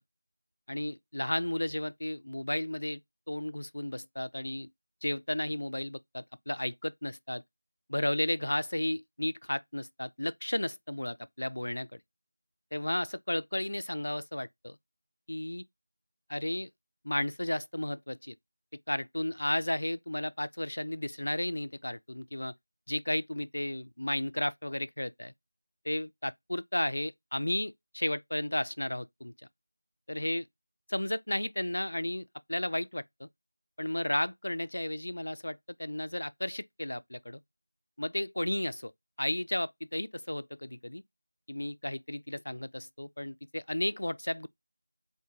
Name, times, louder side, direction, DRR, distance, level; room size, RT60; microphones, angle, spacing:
voice 1, 0.7-3.0 3.3-4.7 5.0-7.4 7.9-11.9 12.7-14.8 15.3-15.6 16.3-16.7 17.0-18.3 18.9-22.5 22.9-25.3 25.8-29.3 30.1-30.5 30.9-33.3 33.8-37.4 38.0-38.9 39.2-41.0 41.5-44.5, left 1 dB, 75° left, 0.4 m, -33 dB
4.4 x 2.2 x 3.8 m
figure-of-eight pair, 175°, 0 cm